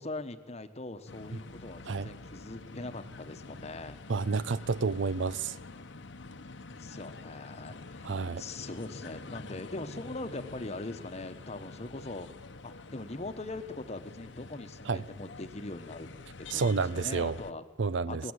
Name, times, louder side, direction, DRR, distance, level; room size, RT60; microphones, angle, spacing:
voice 1, 0.0-4.0 6.7-16.1 16.4-17.6 18.1-18.3, left 2 dB, 35° left, 1.1 m, -41 dB
sound 1, 1.1-17.5, left 3 dB, 65° left, 1.0 m, -47 dB
voice 2, 4.1-5.5 8.0-8.4 14.9-15.0 16.5-17.4 17.8-18.2, right 4 dB, 65° right, 0.6 m, -30 dB
19.0 x 16.0 x 9.0 m
head